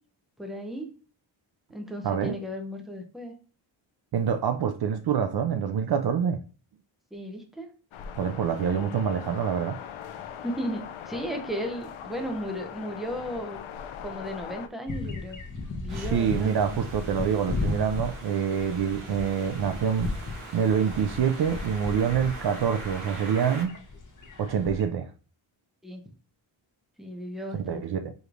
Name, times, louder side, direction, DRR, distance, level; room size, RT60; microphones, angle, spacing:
voice 1, 0.4-0.9 1.7-3.3 7.1-7.7 8.6-8.9 10.4-13.6 14.0-15.4 15.8-16.5 25.8-26.0 27.0-27.8, equal, ahead, 0.8 m, -35 dB
voice 2, 2.0-2.3 4.1-6.4 8.2-9.8 15.9-20.1 20.5-23.7 24.4-25.1 27.5-28.1, right 7 dB, 55° right, 0.5 m, -26 dB
sound 1, 7.9-14.7, left 8 dB, 80° left, 0.6 m, -41 dB
sound 2, 14.9-24.9, left 3 dB, 40° left, 1.0 m, -36 dB
sound 3, 15.9-23.6, right 2 dB, 90° right, 1.7 m, -43 dB
5.0 x 3.2 x 2.5 m
wide cardioid pair, 100°, 48 cm